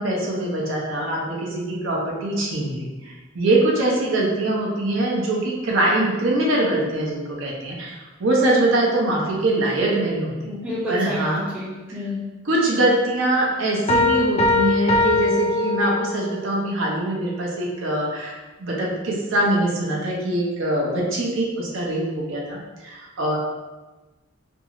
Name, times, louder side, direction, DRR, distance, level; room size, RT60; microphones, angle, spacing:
voice 1, 0.0-10.5 10.9-11.4 12.4-23.4, right 1 dB, 70° right, -3 dB, 0.6 m, -23 dB
voice 2, 10.4-12.2, left 1 dB, 5° right, -7 dB, 0.6 m, -29 dB
sound 1, 13.9-16.4, left 3 dB, 30° left, 0.3 m, -21 dB
2.6 x 2.4 x 2.9 m, 1.2 s
head